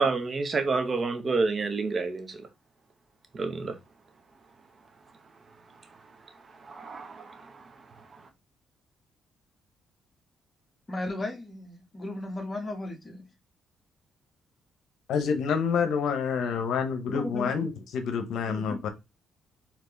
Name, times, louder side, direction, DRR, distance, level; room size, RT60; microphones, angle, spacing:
voice 1, 0.0-2.4 3.3-3.7 6.7-7.5, right 4 dB, 40° right, 0.9 m, -28 dB
voice 2, 10.9-13.3 17.1-17.6 18.5-18.8, left 2 dB, 25° left, 1.3 m, -35 dB
voice 3, 15.1-18.9, left 6 dB, 75° left, 0.8 m, -28 dB
4.4 x 2.9 x 3.1 m
cardioid pair, 90°, 0 cm